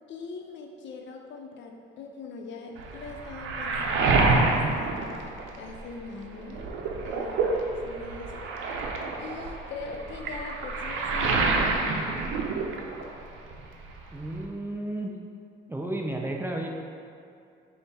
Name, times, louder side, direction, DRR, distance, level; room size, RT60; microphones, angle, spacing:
voice 1, 0.1-5.1 5.5-6.7 7.0-7.5 7.8-8.5 9.2-12.3, left 4 dB, 70° left, 2 dB, 0.5 m, -41 dB
Waves surf, 2.8-6.0 6.3-13.3 13.5-14.5, right 3 dB, 85° right, 0.5 m, -28 dB
voice 2, 14.1-15.1 15.7-16.7, right 1 dB, 10° right, 0 dB, 0.4 m, -32 dB
5.4 x 2.1 x 4.1 m, 2.5 s
cardioid pair, 90°, 20 cm